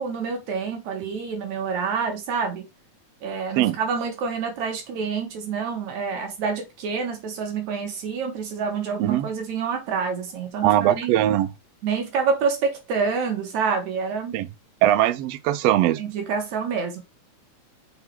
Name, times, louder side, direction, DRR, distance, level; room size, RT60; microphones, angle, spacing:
voice 1, 0.0-2.6 3.2-11.1 11.8-14.4 16.0-17.0, right 5 dB, 70° right, 2.6 m, -27 dB
voice 2, 10.6-11.5 14.3-14.5 14.8-16.0, right 13 dB, 85° right, 1.4 m, -20 dB
5.9 x 4.0 x 4.5 m
omnidirectional pair, 3.6 m